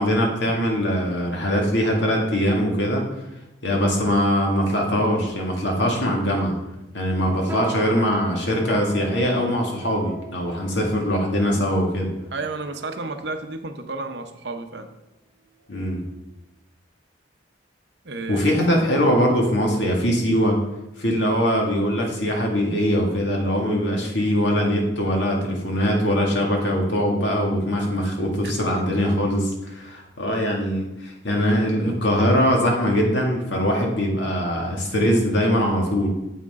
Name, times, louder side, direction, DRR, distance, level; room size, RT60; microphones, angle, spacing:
voice 1, 0.0-3.1 3.6-6.6 6.9-12.1 15.7-16.0 18.3-20.6 21.0-36.1, equal, 65° left, 0 dB, 2.0 m, -22 dB
sound 1, 7.5-13.2 13.8-14.0 14.7-15.0 15.4-15.6 16.3-16.4, right 6 dB, 10° right, 0.6 m, -40 dB
voice 2, 12.3-14.9 18.0-18.4 28.4-28.6, right 3 dB, 60° right, 7 dB, 0.8 m, -32 dB
9.2 x 7.8 x 3.7 m, 0.96 s
head